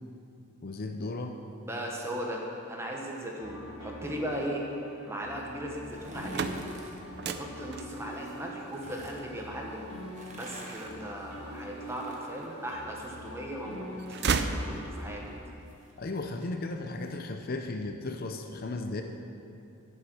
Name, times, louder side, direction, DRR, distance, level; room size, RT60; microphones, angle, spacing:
voice 1, 0.6-1.4 16.0-19.0, left 2 dB, 45° left, 5 dB, 0.6 m, -35 dB
voice 2, 1.6-4.6 5.0-6.5 7.2-9.9 10.3-15.2, equal, 15° right, -1 dB, 1.3 m, -37 dB
sound 1, 3.4-15.2, equal, 90° left, 2.0 m, -44 dB
sound 2, 5.8-7.0 8.2-9.2 10.0-13.4 13.7-17.2 17.5-17.6, right 1 dB, 35° right, 1.3 m, -50 dB
sound 3, 6.2-12.0 12.6-13.4 13.7-15.3, right 4 dB, 50° right, 0.5 m, -35 dB
10.5 x 7.7 x 6.2 m, 2.7 s
head